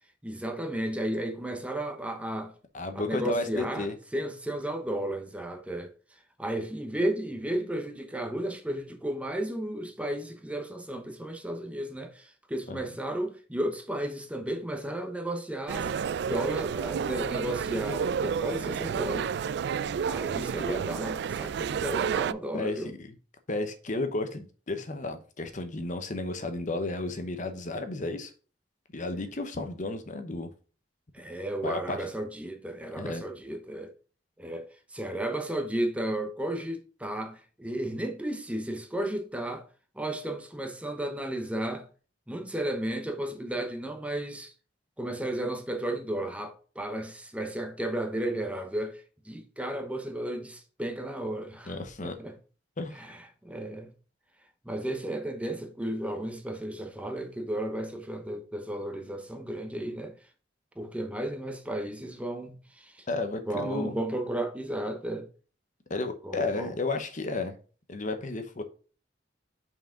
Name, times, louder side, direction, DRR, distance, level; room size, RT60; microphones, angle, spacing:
voice 1, 0.2-2.5 2.9-5.9 6.4-15.9 16.2-19.3 20.0-22.9 31.1-33.9 34.4-39.7 40.0-41.9 42.3-44.5 45.0-52.3 52.9-53.9 54.6-60.1 60.8-63.1 63.4-65.3 66.2-66.7, right 1 dB, 5° right, 0.8 m, -33 dB
voice 2, 2.7-4.0 12.7-12.8 22.5-23.1 23.5-28.3 28.9-30.5 31.6-32.0 33.0-33.2 51.7-52.2 52.8-52.9 63.1-64.0 65.9-67.6 67.9-68.6, left 2 dB, 45° left, 0.9 m, -33 dB
sound 1, 15.7-22.3, right 7 dB, 65° right, 0.3 m, -31 dB
5.9 x 4.8 x 3.6 m
head